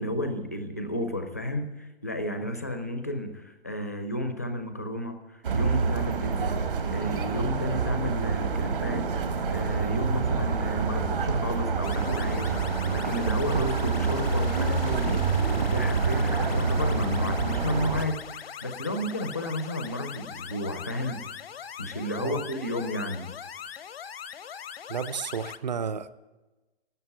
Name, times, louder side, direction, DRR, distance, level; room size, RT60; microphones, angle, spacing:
voice 1, 0.0-6.6 6.9-21.2 21.8-23.3, left 1 dB, 15° left, 6 dB, 0.4 m, -32 dB
sound 1, 5.4-18.1, right 4 dB, 60° right, 1.4 m, -27 dB
sound 2, 11.8-25.6, left 8 dB, 75° left, 0.8 m, -41 dB
voice 2, 24.9-26.1, right 6 dB, 45° right, 15 dB, 0.6 m, -32 dB
12.5 x 7.9 x 9.2 m, 1.1 s
hypercardioid pair, 180°, 30 cm